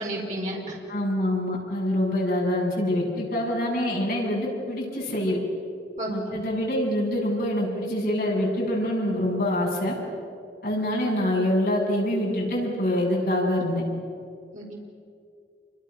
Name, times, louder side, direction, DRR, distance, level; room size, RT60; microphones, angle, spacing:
voice 1, 0.0-0.8 6.0-6.4 14.5-14.8, right 1 dB, 40° right, -2 dB, 4.8 m, -32 dB
voice 2, 0.9-5.4 6.1-10.0 10.6-13.8, left 1 dB, 55° left, -3 dB, 7.8 m, -25 dB
28.5 x 25.0 x 6.6 m, 2.3 s
head